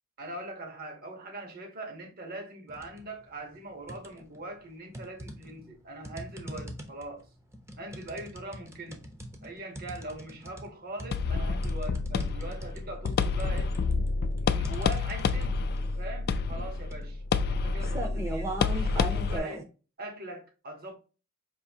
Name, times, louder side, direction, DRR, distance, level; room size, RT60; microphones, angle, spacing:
voice 1, 0.2-7.3 7.8-9.0 9.4-13.7 14.4-15.7 16.0-17.2 17.5-19.7 20.0-21.0, right 2 dB, 45° right, 1.0 m, -42 dB
sound 1, 2.7-3.1 3.5-4.4 4.9-19.6, right 1 dB, 15° right, 0.6 m, -40 dB
sound 2, 11.1-19.4, left 4 dB, 50° left, 0.3 m, -28 dB
4.8 x 2.6 x 2.7 m
head